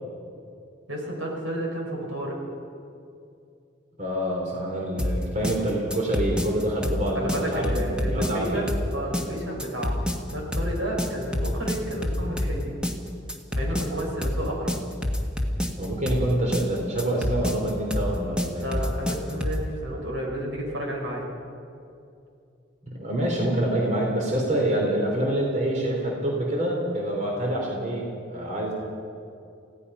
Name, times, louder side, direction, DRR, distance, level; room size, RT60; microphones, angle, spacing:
voice 1, 0.9-2.4 6.9-10.0 10.3-12.7 13.5-14.7 18.6-21.3, right 1 dB, 85° right, -1 dB, 6.0 m, -31 dB
voice 2, 4.0-8.7 15.8-18.6 22.9-28.7, right 1 dB, 40° right, -1 dB, 3.5 m, -26 dB
sound 1, 5.0-19.7, left 1 dB, 5° right, 1.5 m, -27 dB
29.5 x 16.5 x 5.6 m, 2.5 s
head